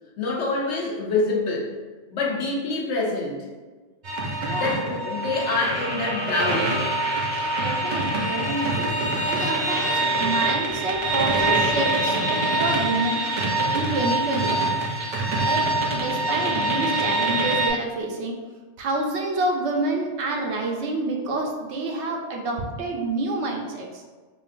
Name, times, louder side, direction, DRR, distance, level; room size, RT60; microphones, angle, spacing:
voice 1, 0.2-1.7 2.1-3.5 4.5-6.7, left 3 dB, 75° left, -2 dB, 1.0 m, -26 dB
sound 1, 4.0-17.7, right 2 dB, 50° right, 0.7 m, -24 dB
voice 2, 4.4-4.8 7.6-8.9 9.2-12.2 12.6-13.2 13.7-14.8 15.4-15.7 15.9-18.3 18.8-24.0, right 2 dB, 70° right, 1 dB, 0.9 m, -28 dB
5.0 x 2.5 x 2.4 m, 1.3 s
omnidirectional pair, 1.2 m